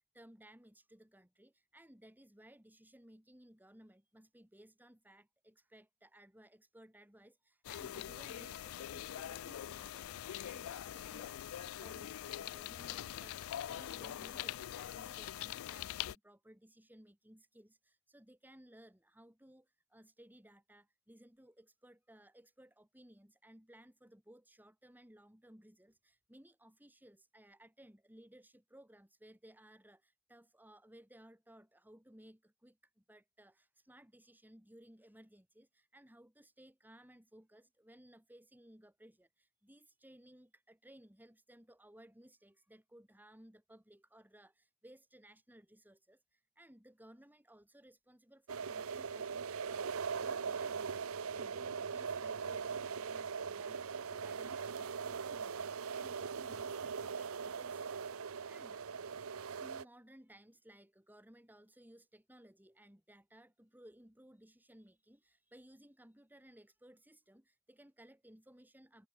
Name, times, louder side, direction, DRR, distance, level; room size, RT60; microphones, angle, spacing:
voice 1, 0.0-58.8 59.6-69.1, right 1 dB, 10° right, 3.6 m, -60 dB
sound 1, 7.6-16.1, left 11 dB, 75° left, 0.4 m, -43 dB
sound 2, 48.5-59.8, right 6 dB, 75° right, 0.7 m, -40 dB
head